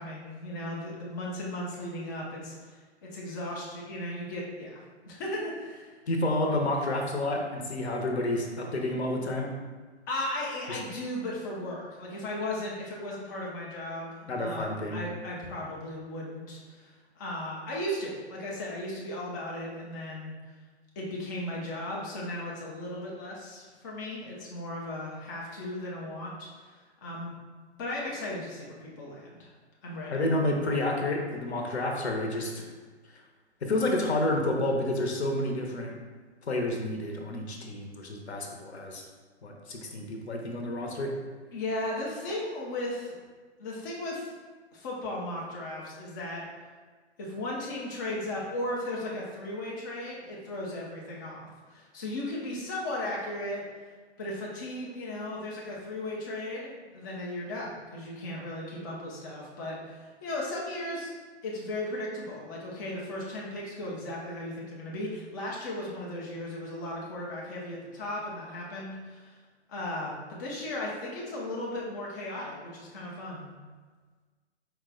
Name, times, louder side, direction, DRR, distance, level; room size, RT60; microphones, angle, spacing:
voice 1, 0.0-5.9 10.1-20.4 21.0-27.3 27.8-29.5 29.8-30.3 41.5-43.1 43.6-44.3 44.7-46.5 47.2-53.6 54.2-61.1 61.4-69.3 69.7-73.5, left 1 dB, 20° left, -4 dB, 0.4 m, -36 dB
voice 2, 6.1-9.5 10.7-10.8 14.3-15.0 30.1-32.7 33.6-35.9 36.5-39.0 39.4-41.1, left 1 dB, 70° left, 1 dB, 0.8 m, -29 dB
4.6 x 2.2 x 3.7 m, 1.4 s
figure-of-eight pair, 125°, 34 cm